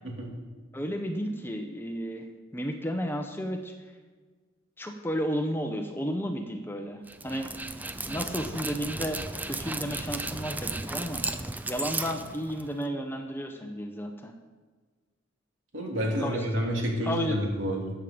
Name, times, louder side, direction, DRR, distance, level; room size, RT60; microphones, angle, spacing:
voice 1, 0.7-3.7 4.8-7.5 8.1-9.2 9.5-11.2 11.7-14.3 16.0-16.5 17.0-17.4, equal, 10° left, 4 dB, 0.9 m, -33 dB
Dog, 7.1-12.9, right 2 dB, 10° right, 0.4 m, -35 dB
voice 2, 15.7-17.9, equal, 75° right, 0 dB, 2.8 m, -29 dB
13.0 x 8.7 x 5.1 m, 1.4 s
head